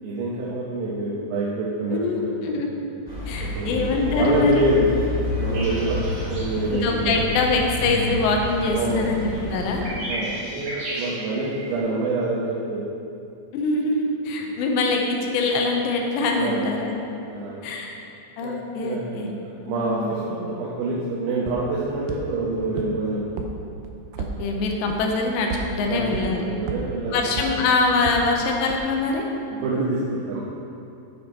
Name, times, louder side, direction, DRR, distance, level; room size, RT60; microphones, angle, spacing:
voice 1, 0.0-2.8 3.4-4.9 5.4-6.0 6.3-7.2 8.7-9.0 10.1-12.9 16.3-16.7 17.3-17.7 18.4-23.5 25.9-27.3 29.5-30.4, right 2 dB, 75° right, -6 dB, 2.9 m, -27 dB
voice 2, 1.9-2.7 3.3-4.6 6.7-9.8 13.5-16.9 17.6-18.0 18.4-19.3 19.6-20.1 24.2-26.4 27.1-29.3, left 3 dB, 85° left, 1 dB, 3.1 m, -24 dB
sound 1, 3.0-9.9, left 1 dB, 20° right, 1.1 m, -30 dB
sound 2, 5.5-11.8, right 1 dB, 50° right, 2.0 m, -36 dB
sound 3, 21.5-21.6 22.1-22.2 22.8-22.9 23.4-23.5 23.8-24.3 24.9-25.0 25.5-25.6 26.1-26.2 26.7-26.8 27.4-27.5 28.1-28.2 28.7-28.8, right 10 dB, 90° right, 2.0 m, -30 dB
9.0 x 7.5 x 4.7 m, 2.6 s
omnidirectional pair, 5.0 m